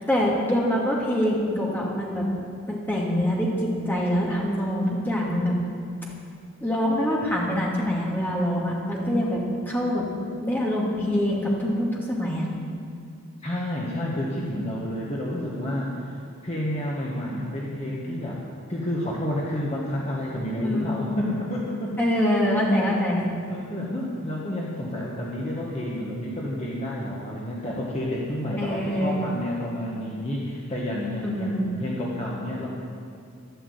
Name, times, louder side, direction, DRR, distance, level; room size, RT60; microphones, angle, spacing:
voice 1, 0.1-2.3 2.7-5.6 6.6-10.1 10.4-12.5 20.6-20.9 22.0-23.2 28.6-29.2 31.2-31.6, equal, 10° left, -4 dB, 2.5 m, -24 dB
voice 2, 13.4-15.9 16.4-18.4 18.7-21.9 23.5-32.7, left 1 dB, 30° left, -4 dB, 1.6 m, -30 dB
12.5 x 11.5 x 8.1 m, 2.3 s
head